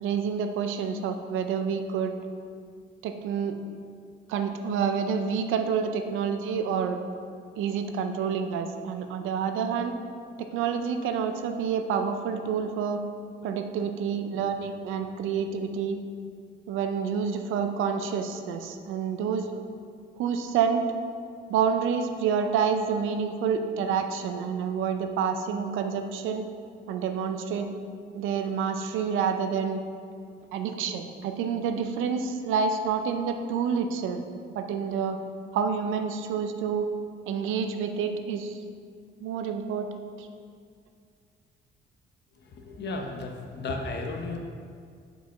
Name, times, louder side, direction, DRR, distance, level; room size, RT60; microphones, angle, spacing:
voice 1, 0.0-2.2 3.0-3.6 4.3-7.0 7.6-9.9 10.4-13.0 13.4-16.0 16.7-19.6 20.2-20.9 21.5-26.5 26.9-27.7 28.1-29.8 30.5-34.2 34.5-35.2 35.5-36.9 37.3-38.6 39.2-40.3, right 6 dB, 90° right, 7 dB, 0.5 m, -28 dB
voice 2, 42.6-44.4, left 3 dB, 60° left, 3 dB, 0.8 m, -33 dB
4.8 x 4.5 x 4.5 m, 2.2 s
cardioid pair, 90°, 20 cm